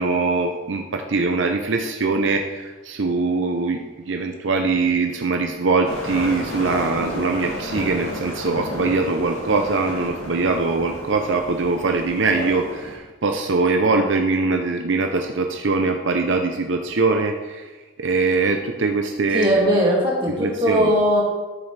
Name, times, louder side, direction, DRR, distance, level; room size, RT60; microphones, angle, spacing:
voice 1, 0.0-19.7 20.4-20.9, right 3 dB, 70° right, 4 dB, 0.7 m, -22 dB
sound 1, 5.8-12.9, left 1 dB, 85° left, 2.7 m, -32 dB
voice 2, 19.3-21.2, equal, 25° right, -4 dB, 2.4 m, -19 dB
13.0 x 7.2 x 3.3 m, 1.2 s
head